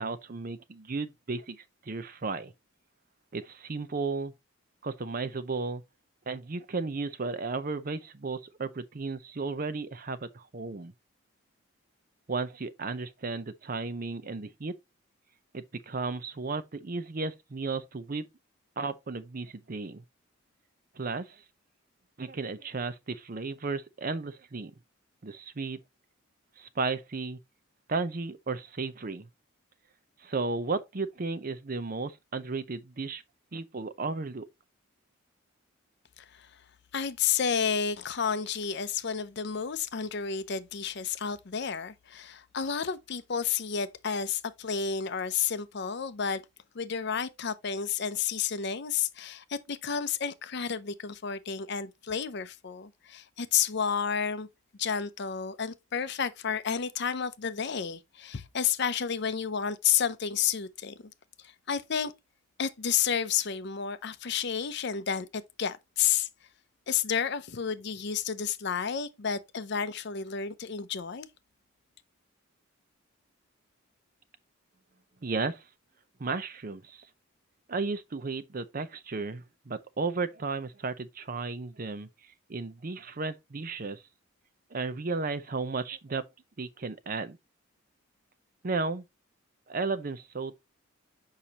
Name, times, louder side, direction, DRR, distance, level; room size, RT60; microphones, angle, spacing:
voice 1, 0.0-2.5 3.3-4.3 4.8-5.8 6.3-10.9 12.3-14.7 15.5-18.3 18.8-20.0 21.0-21.4 22.2-24.7 25.2-25.8 26.6-27.4 27.9-29.3 30.2-33.2 33.5-34.5 75.2-75.6 76.2-77.1 77.7-82.1 82.5-84.0 84.7-86.2 86.6-87.4 88.6-89.0 89.7-90.6, right 4 dB, 40° right, 0.6 m, -34 dB
voice 2, 36.2-36.5 36.9-46.4 46.7-54.5 54.8-60.9 61.4-62.1 62.6-66.3 66.9-71.3, left 7 dB, 50° left, 0.6 m, -31 dB
6.8 x 5.6 x 2.9 m
head